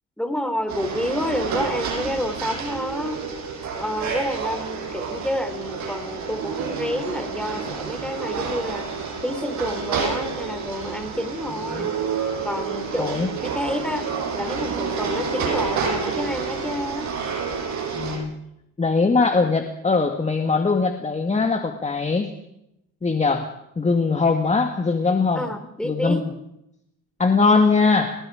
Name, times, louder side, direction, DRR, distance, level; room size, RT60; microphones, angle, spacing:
voice 1, 0.2-3.2 3.8-8.9 9.2-12.0 12.4-14.1 14.3-17.1 25.3-26.2, equal, 5° left, 7 dB, 3.7 m, -29 dB
sound 1, 0.7-18.2, right 5 dB, 70° right, 6.3 m, -29 dB
voice 2, 13.0-13.3 17.9-18.3 18.8-22.3 23.0-23.5 23.8-25.5 25.8-26.3 27.2-28.1, left 4 dB, 25° left, 5 dB, 1.8 m, -21 dB
29.0 x 18.5 x 5.0 m, 0.82 s
cardioid pair, 90°, 30 cm